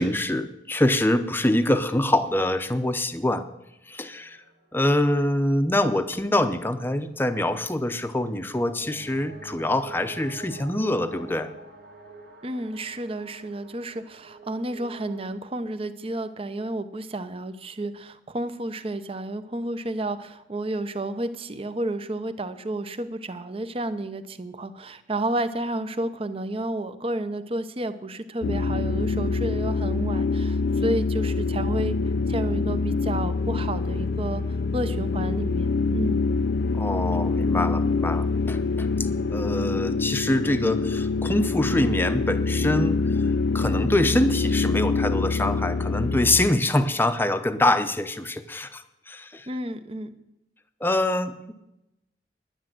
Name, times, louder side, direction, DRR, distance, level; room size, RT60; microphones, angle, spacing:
voice 1, 0.0-3.5 3.9-4.4 4.7-11.5 36.7-38.9 39.3-43.0 43.5-49.5 50.8-51.5, left 1 dB, 10° left, 9 dB, 0.7 m, -24 dB
sound 1, 4.0-15.3, right 3 dB, 60° right, 2.1 m, -47 dB
voice 2, 12.4-32.0 32.3-36.2 49.5-50.2, right 1 dB, 35° right, 11 dB, 0.8 m, -31 dB
sound 2, 28.4-46.5, left 4 dB, 65° left, 0.4 m, -25 dB
10.5 x 10.0 x 7.6 m, 0.88 s
head